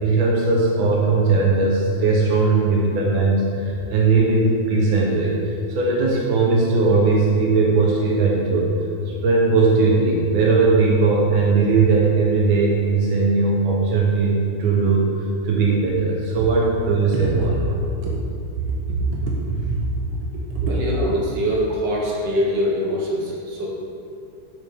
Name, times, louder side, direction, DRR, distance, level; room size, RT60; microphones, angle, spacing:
voice 1, 0.0-8.7 9.1-15.1 15.4-17.6 18.0-18.1 19.2-19.3 20.5-20.6, right 3 dB, 90° right, -3 dB, 1.7 m, -19 dB
voice 2, 20.6-23.7, equal, 60° right, -4 dB, 2.2 m, -23 dB
9.3 x 6.7 x 3.5 m, 2.6 s
omnidirectional pair, 2.1 m